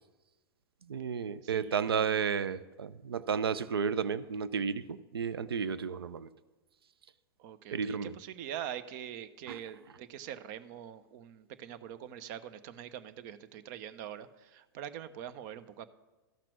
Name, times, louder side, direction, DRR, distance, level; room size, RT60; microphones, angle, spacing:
voice 1, 0.9-6.3 7.7-8.1 9.5-9.6, right 6 dB, 85° right, 15 dB, 0.5 m, -32 dB
voice 2, 1.4-2.2 7.4-15.9, right 10 dB, 50° right, 14 dB, 0.7 m, -44 dB
13.5 x 5.9 x 6.1 m, 1.2 s
hypercardioid pair, 105°, 12 cm